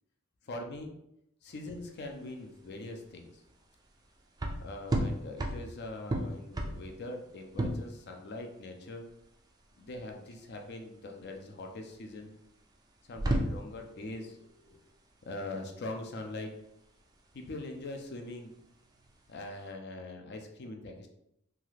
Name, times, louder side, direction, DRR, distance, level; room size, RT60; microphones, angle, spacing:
voice 1, 0.4-0.9 1.4-3.4 4.6-9.1 9.8-12.3 13.1-14.8 15.3-16.5 17.3-18.6 19.3-21.1, left 2 dB, 50° left, 3 dB, 0.5 m, -42 dB
sound 1, 1.5-19.7, right 1 dB, 20° right, 0.3 m, -37 dB
2.8 x 2.4 x 3.2 m, 0.80 s
head